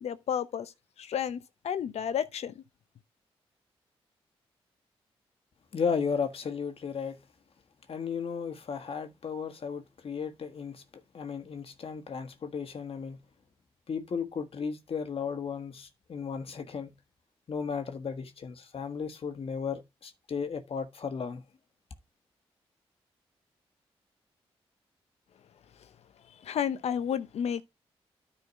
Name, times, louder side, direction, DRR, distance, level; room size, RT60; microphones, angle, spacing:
voice 1, 0.0-0.7 1.0-2.6 26.4-27.6, left 8 dB, 75° left, 0.8 m, -31 dB
voice 2, 5.7-7.2 7.9-10.8 11.1-13.2 13.9-16.9 17.5-21.4, left 6 dB, 60° left, 1.5 m, -34 dB
9.9 x 4.2 x 5.2 m
supercardioid pair, 55°, 11 cm